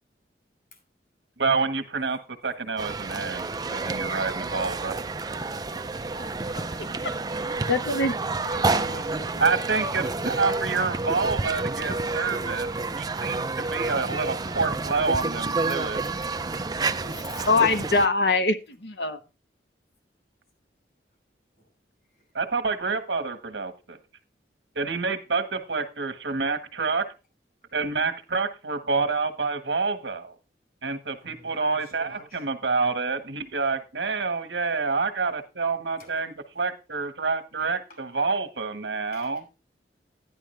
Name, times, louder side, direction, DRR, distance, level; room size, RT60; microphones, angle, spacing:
voice 1, 1.4-4.9 9.4-12.7 13.0-13.4 13.7-16.0 22.3-24.0 24.7-27.1 27.7-30.3 30.8-39.5, right 4 dB, 85° right, 1.6 m, -28 dB
sound 1, 2.8-18.1, right 3 dB, 20° right, 0.5 m, -29 dB
voice 2, 6.1-6.7 7.7-8.1 16.8-19.2, left 3 dB, 70° left, 1.2 m, -24 dB
voice 3, 8.5-11.2 15.7-15.8 16.2-16.6 17.1-17.5 31.2-32.4 36.0-36.1 39.1-39.4, left 1 dB, 55° left, 6.0 m, -46 dB
11.5 x 11.0 x 3.4 m
head